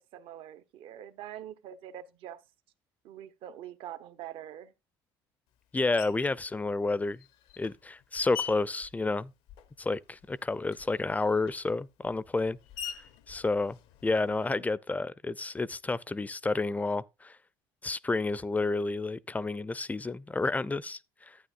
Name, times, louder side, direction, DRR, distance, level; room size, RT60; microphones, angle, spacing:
voice 1, 0.0-2.4 3.0-4.7 14.1-14.6, right 11 dB, 70° right, 1.0 m, -45 dB
voice 2, 5.7-7.2 7.6-9.3 9.8-12.6 13.3-13.8 14.0-17.4 17.8-21.4, left 3 dB, 15° left, 0.5 m, -30 dB
Screech, 6.0-6.5 7.2-9.9 10.2-14.5, left 8 dB, 75° left, 0.8 m, -45 dB
11.5 x 8.9 x 2.5 m
supercardioid pair, 80°, 10 cm